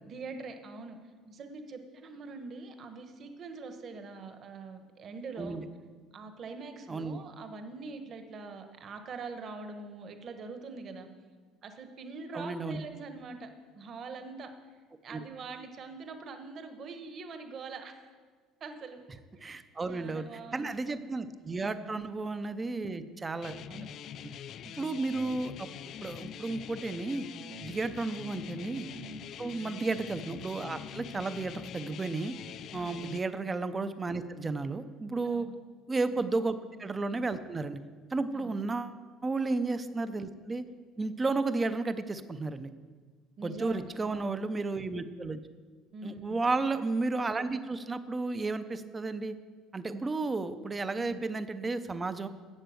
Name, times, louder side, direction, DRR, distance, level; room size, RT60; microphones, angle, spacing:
voice 1, 0.1-1.0 1.3-5.6 6.1-11.1 11.6-13.5 13.7-14.5 15.0-18.1 18.6-19.0 19.3-20.8 21.9-22.0 23.6-23.9 27.4-27.7 28.9-29.2 32.7-33.1 35.2-35.5 36.1-36.2 38.3-38.5 41.0-41.2 43.4-44.4 45.9-46.4 51.0-51.2, right 4 dB, 30° right, 7 dB, 1.1 m, -44 dB
voice 2, 6.9-7.2 12.3-12.8 15.1-15.2 19.4-20.3 20.5-23.6 24.6-25.7 26.0-27.3 27.6-28.9 29.4-32.3 32.7-35.5 35.9-37.8 38.1-40.6 41.0-42.7 43.4-45.4 46.0-49.3 49.7-52.3, right 3 dB, 15° right, 11 dB, 0.5 m, -33 dB
sound 1, 23.4-33.2, left 9 dB, 40° left, 0.4 m, -44 dB
11.5 x 7.9 x 7.7 m, 1.5 s
cardioid pair, 170°, 0 cm